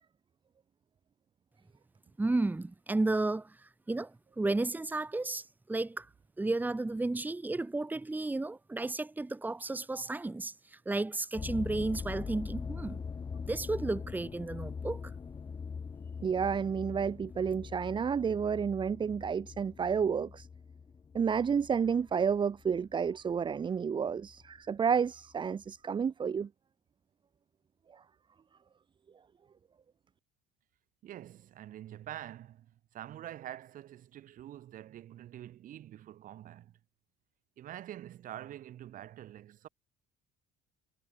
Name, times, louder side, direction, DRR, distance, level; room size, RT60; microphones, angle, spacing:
voice 1, 2.2-6.1 6.4-13.0 13.4-15.1, right 2 dB, 10° right, 2.9 m, -33 dB
sound 1, 11.4-23.6 24.2-24.6 25.2-25.3 25.6-25.7, left 5 dB, 25° left, 2.5 m, -42 dB
voice 2, 16.2-20.5 21.1-26.5, right 6 dB, 25° right, 1.7 m, -30 dB
voice 3, 31.0-36.8 37.6-39.7, right 12 dB, 50° right, 6.3 m, -46 dB
cardioid pair, 135°, 17 cm